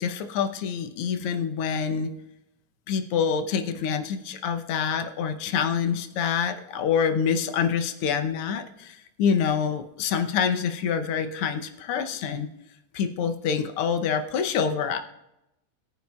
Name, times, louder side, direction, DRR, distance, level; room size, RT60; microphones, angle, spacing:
voice 1, 0.0-2.1 2.9-12.5 12.9-15.0, left 7 dB, 75° left, 7 dB, 1.3 m, -26 dB
21.0 x 9.5 x 2.3 m, 0.87 s
omnidirectional pair, 3.5 m